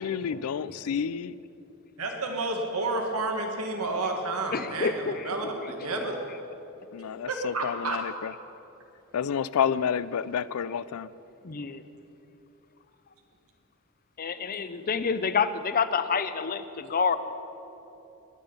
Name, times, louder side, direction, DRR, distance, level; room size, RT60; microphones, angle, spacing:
voice 1, 0.0-1.4 6.9-8.3 9.1-11.1, left 7 dB, 85° left, 18 dB, 0.4 m, -29 dB
voice 2, 2.0-6.2 7.3-8.0, right 2 dB, 85° right, 2 dB, 1.8 m, -30 dB
voice 3, 4.5-5.3 11.4-11.8 14.2-17.2, left 5 dB, 40° left, 12 dB, 0.6 m, -28 dB
21.5 x 9.0 x 5.5 m, 3.0 s
head